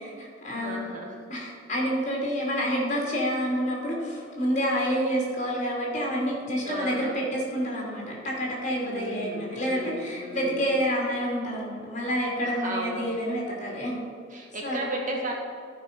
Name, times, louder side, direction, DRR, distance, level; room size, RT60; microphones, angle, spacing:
voice 1, 0.0-0.9 1.3-14.0 14.6-14.9, equal, 40° left, -3 dB, 2.8 m, -28 dB
voice 2, 0.5-1.2 6.6-7.3 8.8-10.6 12.4-13.0 14.3-15.3, right 1 dB, 40° right, -1 dB, 1.6 m, -35 dB
13.5 x 5.7 x 5.2 m, 2.1 s
head